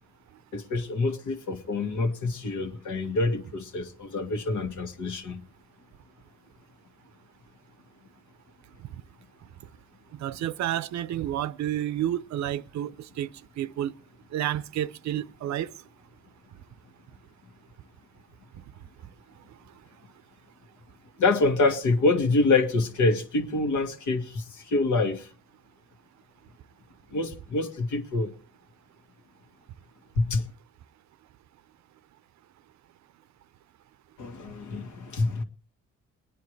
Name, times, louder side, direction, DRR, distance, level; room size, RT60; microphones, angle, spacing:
voice 1, 0.5-5.4 21.2-25.3 27.1-28.3 30.2-30.4 34.2-35.4, left 3 dB, 80° left, 1.8 m, -26 dB
voice 2, 10.1-13.3 13.6-13.9 14.3-15.7, right 11 dB, 65° right, 0.6 m, -30 dB
22.5 x 9.6 x 3.2 m
cardioid pair, 90°, 30 cm